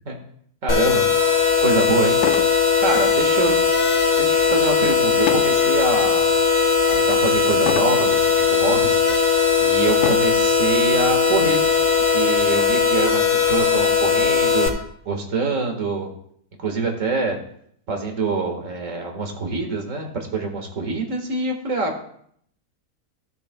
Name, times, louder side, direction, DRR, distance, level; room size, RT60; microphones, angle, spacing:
voice 1, 0.6-1.1 1.6-2.2 2.8-3.5 4.2-6.3 6.9-9.0 9.6-11.6 12.1-16.1 16.6-17.4 17.9-21.9, right 4 dB, 55° right, 3 dB, 1.9 m, -25 dB
sound 1, 0.7-14.7, left 6 dB, 50° left, 1.8 m, -18 dB
sound 2, 1.2-1.3 2.1-2.6 3.0-3.3 5.3-5.6 6.2-6.6 7.7-8.0 8.8-8.9 10.0-10.4 11.4-11.6 11.9-12.0 12.5-13.6, left 9 dB, 80° left, 1.1 m, -28 dB
16.0 x 6.7 x 2.2 m, 0.67 s
omnidirectional pair, 1.7 m